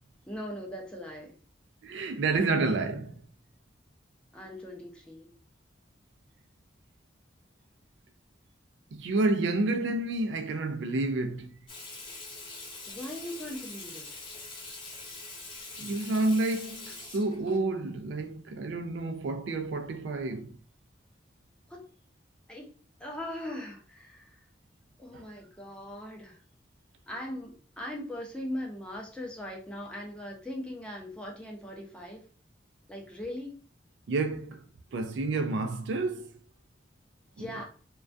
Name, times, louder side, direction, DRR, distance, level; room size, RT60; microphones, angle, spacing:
voice 1, 0.3-1.3 4.3-5.3 12.9-14.1 21.7-21.9 22.5-22.7 23.0-24.4 25.0-26.4 27.1-32.2 32.9-33.5 37.4-37.6, left 1 dB, 5° left, 0.5 m, -40 dB
voice 2, 1.8-3.2 8.9-11.5 15.8-20.6 25.1-25.3 34.1-34.6 34.9-36.4 37.4-37.5, right 2 dB, 75° right, 0.3 m, -29 dB
Water tap faucet / Sink (filling or washing), 11.7-17.6, left 3 dB, 30° left, 0.8 m, -44 dB
2.2 x 2.2 x 2.5 m
head